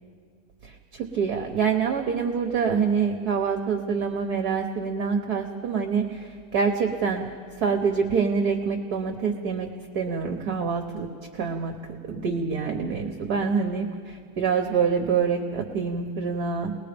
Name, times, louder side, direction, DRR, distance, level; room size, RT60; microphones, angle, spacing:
voice 1, 0.6-7.3 7.6-9.7 9.9-11.1 11.3-11.7 12.1-16.7, right 6 dB, 55° right, 4 dB, 1.4 m, -26 dB
29.5 x 20.5 x 5.2 m, 2.1 s
omnidirectional pair, 2.4 m